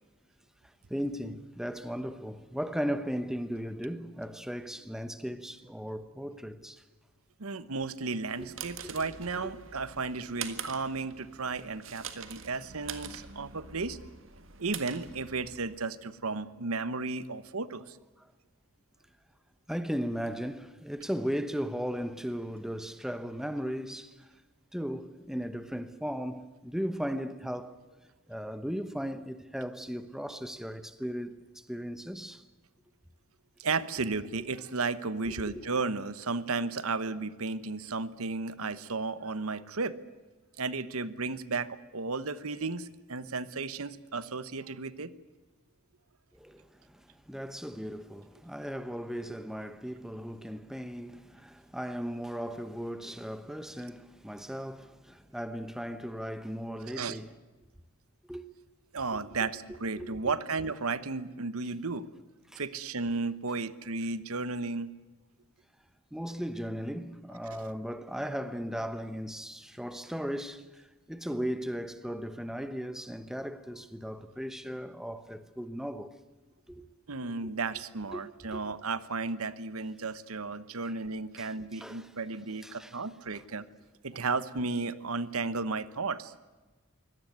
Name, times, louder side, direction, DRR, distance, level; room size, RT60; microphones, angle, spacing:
voice 1, 0.9-6.8 8.4-8.5 8.8-8.9 9.4-9.5 18.2-18.3 19.7-24.3 24.7-27.8 28.3-32.4 35.3-35.5 46.3-57.3 58.3-58.4 59.7-60.3 62.5-62.6 66.1-76.1 76.7-76.8 78.1-78.2 78.5-78.6 80.8-81.0 81.3-82.1 82.6-83.0 83.3-83.4, equal, ahead, 1.0 m, -37 dB
voice 2, 7.4-14.0 14.6-18.0 33.6-40.0 40.6-45.1 56.8-57.2 58.9-62.1 62.6-64.9 77.1-83.6 84.0-86.3, right 4 dB, 80° right, 1.1 m, -34 dB
sound 1, 8.1-15.8, right 7 dB, 60° right, 1.9 m, -44 dB
24.0 x 18.0 x 9.4 m
head